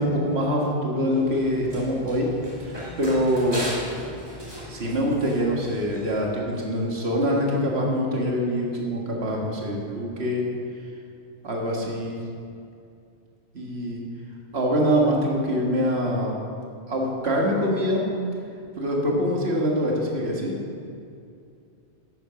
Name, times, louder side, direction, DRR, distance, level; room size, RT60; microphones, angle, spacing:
voice 1, 0.0-2.3 2.6-3.6 4.7-10.4 11.4-12.2 13.5-14.0 14.5-16.3 16.9-18.0 18.8-20.5, equal, 65° right, -1 dB, 2.0 m, -24 dB
Run, 1.0-6.2, equal, 20° right, 2.7 m, -38 dB
11.5 x 8.8 x 5.8 m, 2.5 s
omnidirectional pair, 1.1 m